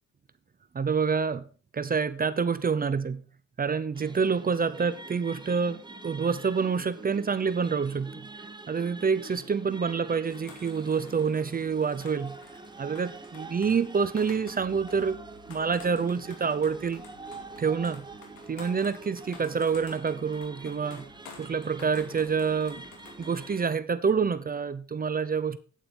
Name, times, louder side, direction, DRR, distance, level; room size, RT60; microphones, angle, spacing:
voice 1, 0.7-1.5 1.7-3.2 3.6-12.4 12.8-15.2 15.5-17.0 17.6-18.1 18.5-21.1 21.4-22.8 23.2-25.6, right 5 dB, 30° right, 0.7 m, -27 dB
sound 1, 3.9-23.7, right 3 dB, 15° right, 1.1 m, -46 dB
sound 2, 10.2-23.5, left 5 dB, 85° left, 2.5 m, -51 dB
9.2 x 8.9 x 4.3 m
cardioid pair, 90°, 30 cm